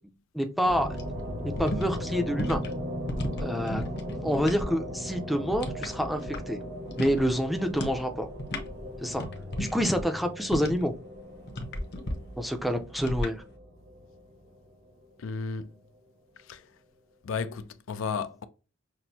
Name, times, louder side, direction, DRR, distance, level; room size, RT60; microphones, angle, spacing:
voice 1, 0.3-0.9 1.6-2.6 3.4-3.8 4.2-6.6 7.0-8.3 9.0-9.2 9.6-10.9 12.4-13.4, equal, ahead, 0.5 m, -27 dB
sound 1, 0.6-15.0, equal, 75° right, 1.4 m, -38 dB
sound 2, 0.9-4.7 5.0-6.6 6.9-7.3 7.7-8.0 8.3-10.9 11.5-12.1 13.0-13.3, equal, 55° left, 0.8 m, -34 dB
voice 2, 15.2-15.7 16.4-16.7 17.2-18.4, left 5 dB, 75° left, 0.4 m, -33 dB
6.0 x 2.0 x 2.7 m
head